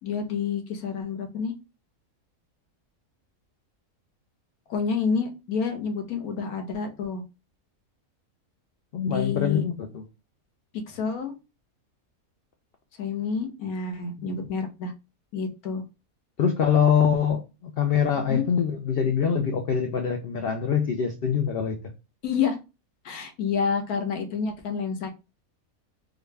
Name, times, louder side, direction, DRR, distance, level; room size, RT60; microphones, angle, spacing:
voice 1, 0.0-1.5 4.7-7.2 9.1-9.6 10.9-11.3 13.0-14.9 15.3-15.8 18.3-18.4 22.2-22.6 23.0-25.1, left 6 dB, 85° left, 1.3 m, -28 dB
voice 2, 8.9-10.0 14.2-14.4 16.4-21.8, left 7 dB, 65° left, 0.6 m, -24 dB
3.8 x 2.2 x 3.2 m
omnidirectional pair, 1.5 m